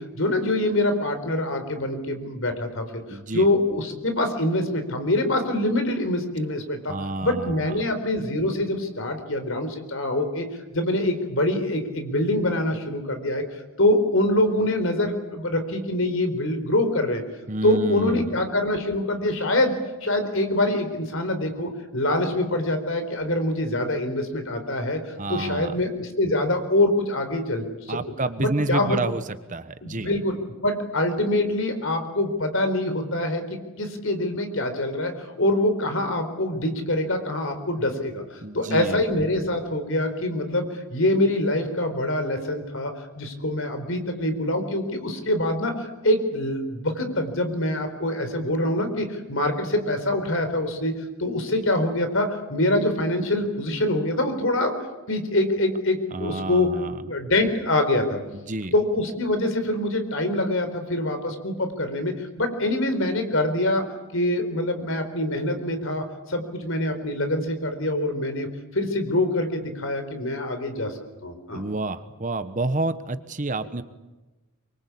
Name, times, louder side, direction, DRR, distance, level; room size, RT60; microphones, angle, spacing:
voice 1, 0.0-6.9 7.2-10.5 10.7-13.4 13.8-17.2 17.6-19.7 20.0-25.0 25.3-28.0 28.4-29.0 29.8-30.3 30.6-54.7 55.1-56.7 57.0-58.2 58.7-63.9 64.1-68.5 68.7-71.6, left 1 dB, 60° left, 7 dB, 4.4 m, -25 dB
voice 2, 3.1-3.5 6.9-7.8 17.5-18.4 25.2-25.8 27.9-29.2 29.5-30.1 38.4-39.0 56.1-57.0 58.3-58.7 71.5-73.8, right 2 dB, 35° right, 12 dB, 1.2 m, -29 dB
25.5 x 23.5 x 8.5 m, 1.1 s
head